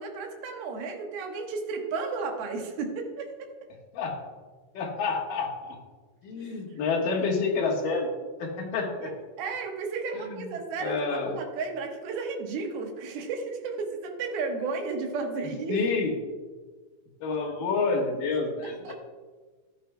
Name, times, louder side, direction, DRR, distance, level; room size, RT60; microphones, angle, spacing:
voice 1, 0.0-3.5 9.0-9.1 9.4-15.8 18.3-18.4 18.8-18.9, right 4 dB, 70° right, 2 dB, 3.1 m, -33 dB
voice 2, 4.7-5.8 6.2-8.1 8.4-9.1 10.1-10.5 10.8-11.4 15.7-16.1 17.2-18.9, left 4 dB, 65° left, 0 dB, 2.7 m, -28 dB
14.5 x 11.0 x 2.3 m, 1.4 s
omnidirectional pair, 4.7 m